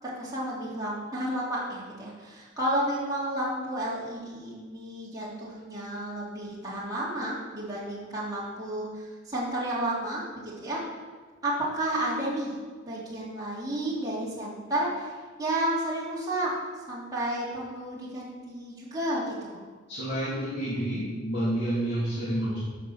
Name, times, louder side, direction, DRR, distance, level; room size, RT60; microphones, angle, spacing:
voice 1, 0.0-10.8 11.4-12.5 12.8-19.6, right 1 dB, 20° right, -8 dB, 3.3 m, -32 dB
voice 2, 19.9-22.6, right 1 dB, 55° left, -10 dB, 2.8 m, -29 dB
10.5 x 5.5 x 7.3 m, 1.5 s
head